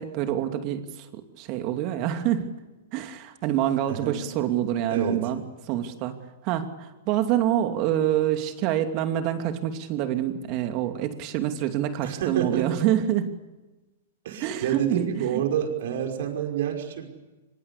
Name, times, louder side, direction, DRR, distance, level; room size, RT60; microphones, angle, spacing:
voice 1, 0.0-2.5 2.9-5.4 5.7-6.2 6.4-13.3 14.4-15.4, right 11 dB, 45° right, 7 dB, 2.7 m, -26 dB
voice 2, 3.9-4.2 4.9-5.2 12.0-13.0 14.2-17.1, right 9 dB, 60° right, 3 dB, 5.4 m, -28 dB
24.5 x 22.0 x 8.4 m, 1.1 s
hypercardioid pair, 115°, 0 cm